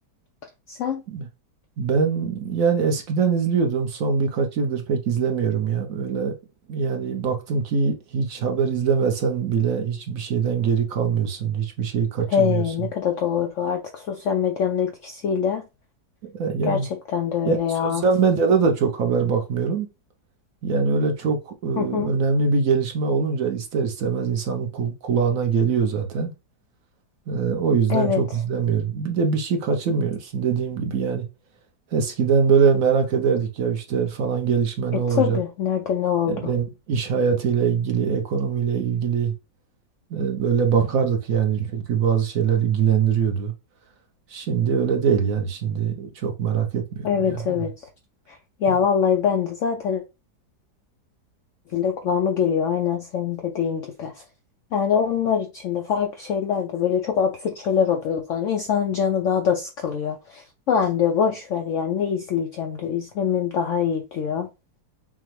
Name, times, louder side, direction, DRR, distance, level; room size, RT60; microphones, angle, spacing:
voice 1, 0.7-1.0 12.3-15.6 16.7-18.0 21.8-22.1 27.9-28.2 35.1-36.5 47.0-47.7 48.3-50.0 51.7-54.1 54.7-64.5, left 7 dB, 70° left, 0.7 m, -24 dB
voice 2, 1.8-6.3 6.7-12.6 16.3-16.9 17.4-19.9 20.6-26.3 27.3-31.2 31.9-35.4 36.3-39.3 40.1-43.5 44.3-47.0 47.3-47.6 48.7-48.8, right 6 dB, 60° right, 1.0 m, -23 dB
5.7 x 2.1 x 3.1 m
omnidirectional pair, 1.8 m